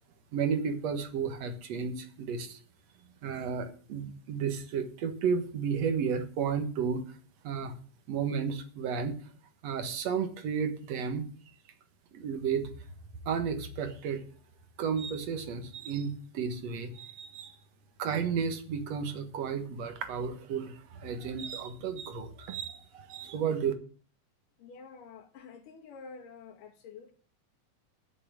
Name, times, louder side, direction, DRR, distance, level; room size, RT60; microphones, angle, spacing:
voice 1, 0.3-2.6 3.2-7.2 7.4-7.8 8.1-9.1 9.6-11.3 12.1-12.7 13.2-14.2 14.8-17.6 18.0-23.7, right 6 dB, 60° right, 8 dB, 2.4 m, -33 dB
voice 2, 24.6-27.1, left 5 dB, 80° left, 3 dB, 3.5 m, -48 dB
10.5 x 6.7 x 8.8 m, 0.43 s
omnidirectional pair, 3.8 m